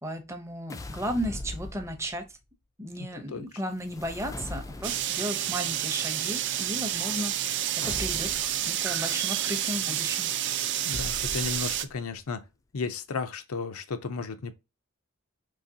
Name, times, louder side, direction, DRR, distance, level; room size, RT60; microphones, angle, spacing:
voice 1, 0.0-2.2 2.8-8.3 8.6-10.3, equal, 15° right, 0.7 m, -35 dB
sound 1, 0.7-2.3 3.7-5.3 7.8-8.7 10.9-12.0, left 2 dB, 15° left, 0.3 m, -40 dB
voice 2, 3.0-3.5 10.9-12.4 12.7-14.5, left 4 dB, 80° left, 0.6 m, -34 dB
sound 2, 4.8-11.8, right 11 dB, 55° right, 0.4 m, -29 dB
4.0 x 2.9 x 2.7 m
head